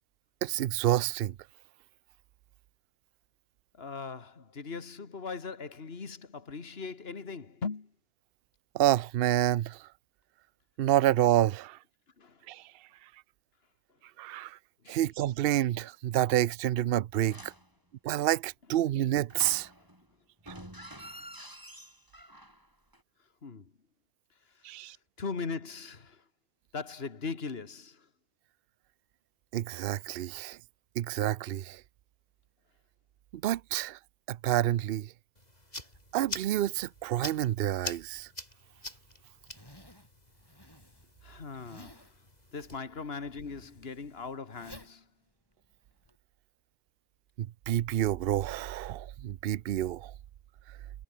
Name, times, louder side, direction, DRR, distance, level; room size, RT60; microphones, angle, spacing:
voice 1, 0.4-1.3 8.7-9.9 10.8-11.8 12.5-12.7 14.2-14.6 14.9-17.5 18.0-19.7 20.5-20.6 24.6-25.0 29.5-30.6 31.0-31.8 33.3-34.0 34.3-35.1 36.1-38.3 47.4-50.1, right 13 dB, 70° right, 0.8 m, -28 dB
voice 2, 3.8-7.9 12.2-12.4 14.8-15.0 17.3-17.4 23.4-23.7 25.2-26.2 26.7-28.1 41.2-42.1 42.5-45.0, left 4 dB, 70° left, 2.1 m, -39 dB
sound 1, 17.2-17.7 19.3-20.1 20.4-22.7 22.9-23.0, right 1 dB, 20° right, 5.9 m, -47 dB
sound 2, 35.4-42.8, left 1 dB, 40° left, 5.0 m, -45 dB
Zipper (clothing), 38.7-46.2, left 1 dB, 20° left, 6.7 m, -56 dB
omnidirectional pair, 1.1 m